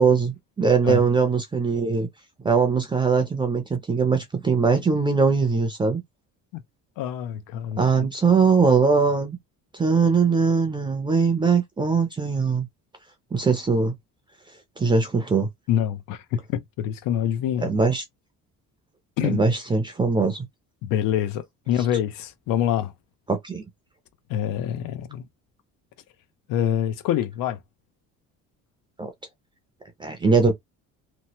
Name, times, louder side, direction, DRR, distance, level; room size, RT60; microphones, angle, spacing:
voice 1, 0.0-2.1 2.4-6.0 7.8-9.4 9.7-12.7 13.3-13.9 14.8-15.5 17.6-18.0 19.2-20.5 23.3-23.6 29.0-29.1 30.0-30.5, right 5 dB, 15° right, 0.5 m, -21 dB
voice 2, 7.0-8.1 15.7-17.7 19.2-19.4 20.8-22.9 24.3-25.2 26.5-27.6, left 10 dB, 80° left, 0.7 m, -26 dB
3.0 x 2.1 x 2.8 m
cardioid pair, 160°, 33 cm